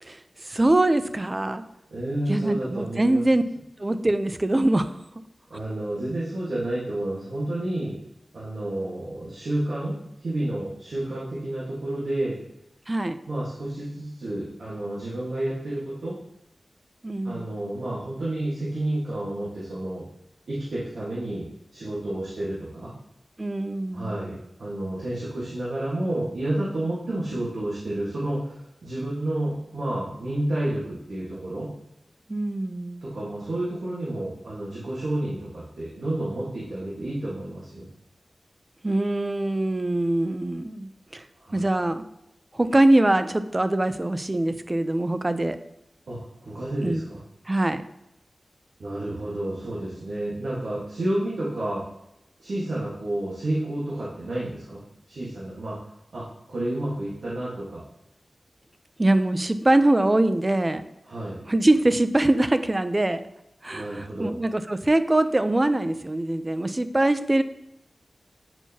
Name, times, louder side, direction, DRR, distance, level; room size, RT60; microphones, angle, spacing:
voice 1, 0.0-1.6 2.3-3.4 3.8-5.0 12.9-13.2 17.0-17.5 23.4-24.3 32.3-33.0 38.8-41.2 41.5-42.0 42.5-45.6 46.8-47.1 47.5-47.8 59.0-60.8 61.5-63.2 63.6-67.4, right 1 dB, 30° right, 11 dB, 0.5 m, -23 dB
voice 2, 1.9-3.2 5.5-8.0 8.3-12.4 13.3-16.2 17.2-20.1 20.5-22.9 23.9-31.7 33.0-37.9 41.4-41.6 46.1-47.2 48.8-51.8 52.4-54.8 55.1-55.8 56.1-57.8 61.0-61.4 63.7-64.3, right 1 dB, 80° right, -7 dB, 1.5 m, -30 dB
8.4 x 4.6 x 2.9 m, 0.82 s
wide cardioid pair, 60°, 0 cm